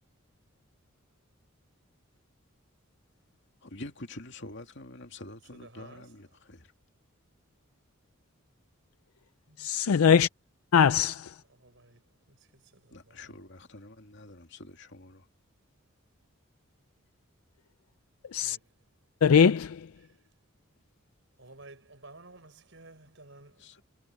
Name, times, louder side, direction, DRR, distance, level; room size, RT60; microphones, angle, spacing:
voice 1, 3.6-6.7 12.9-15.2 23.6-23.8, left 2 dB, 55° left, 2.6 m, -46 dB
voice 2, 5.5-6.2 9.5-9.7 10.8-11.1 11.6-13.4 18.4-18.6 20.0-20.2 21.4-23.8, right 2 dB, 60° right, 6.6 m, -53 dB
voice 3, 9.6-10.3 10.7-11.3 18.3-18.6 19.2-19.9, left 7 dB, 85° left, 0.4 m, -21 dB
head